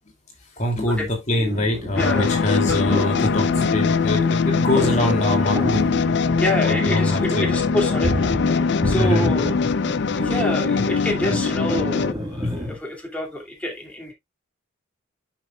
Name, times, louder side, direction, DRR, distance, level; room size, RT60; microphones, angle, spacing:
voice 1, 0.6-5.9 6.6-7.5 8.9-9.2, left 1 dB, 35° left, 2.6 m, -24 dB
sound 1, 1.3-12.8, equal, 20° right, 1.6 m, -30 dB
sound 2, 2.0-12.1, left 5 dB, 55° left, 0.4 m, -22 dB
voice 2, 2.0-2.3 2.9-3.1 6.4-8.2 8.5-9.6 10.2-14.1, left 1 dB, 5° left, 2.5 m, -27 dB
11.0 x 6.0 x 2.3 m
head